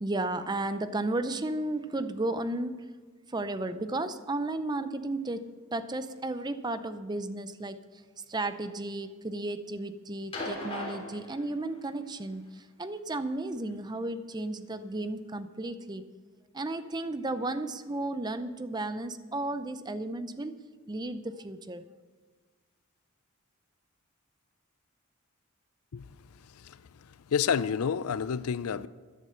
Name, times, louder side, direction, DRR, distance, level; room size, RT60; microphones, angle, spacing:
voice 1, 0.0-2.9 3.3-8.0 8.3-16.0 16.5-20.6 20.9-21.8, right 2 dB, 20° right, 0.6 m, -34 dB
sound 1, 10.3-12.0 13.3-13.4, left 1 dB, 25° left, 3.2 m, -38 dB
voice 2, 26.5-28.9, left 7 dB, 85° left, 0.5 m, -30 dB
15.0 x 11.0 x 5.7 m
head